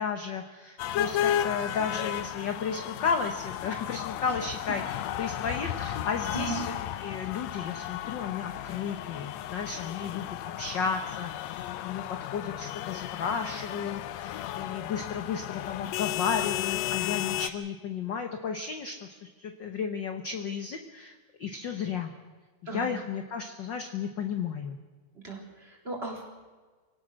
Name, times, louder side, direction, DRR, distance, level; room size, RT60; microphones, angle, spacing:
voice 1, 0.0-6.7 7.0-10.3 10.6-11.6 11.8-22.1 22.7-24.8, left 6 dB, 55° left, 6 dB, 1.3 m, -33 dB
sound 1, 0.8-17.5, left 12 dB, 75° left, 1.9 m, -34 dB
voice 2, 22.7-23.0 25.2-26.3, right 4 dB, 20° right, -1 dB, 3.7 m, -37 dB
25.0 x 18.0 x 6.4 m, 1.4 s
omnidirectional pair, 3.4 m